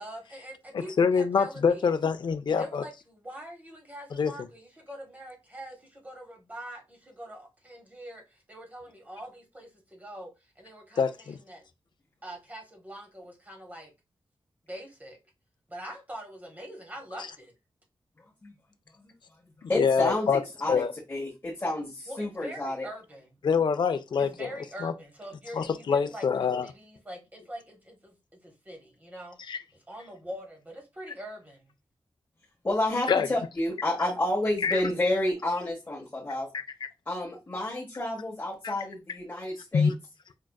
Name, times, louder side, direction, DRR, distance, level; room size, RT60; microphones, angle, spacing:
voice 1, 0.0-1.9 2.6-11.6 12.2-13.9 14.7-15.2 15.7-17.5 22.1-23.4 24.2-29.4 29.9-31.7, right 1 dB, 15° right, 1.0 m, -44 dB
voice 2, 0.7-2.8 4.1-4.3 11.0-11.4 19.6-20.4 20.7-20.9 23.4-24.5 24.8-24.9 25.5-26.7 29.5-29.6 33.1-33.3 34.6-34.8 36.5-36.6 38.6-38.7 39.7-39.9, left 6 dB, 55° left, 0.4 m, -25 dB
voice 3, 19.7-22.9 32.6-36.5 37.1-39.9, left 1 dB, 25° left, 0.9 m, -30 dB
4.6 x 2.5 x 2.2 m
wide cardioid pair, 175°, 9 cm